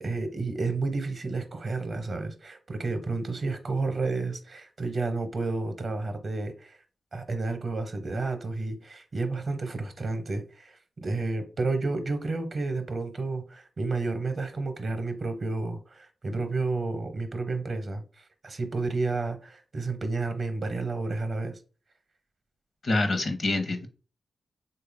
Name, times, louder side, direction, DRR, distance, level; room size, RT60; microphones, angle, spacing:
voice 1, 0.0-6.8 7.1-21.6, right 3 dB, 55° right, 0.7 m, -31 dB
voice 2, 22.8-23.9, left 2 dB, 60° left, 0.8 m, -26 dB
3.3 x 2.3 x 3.3 m
cardioid pair, 50°, 0 cm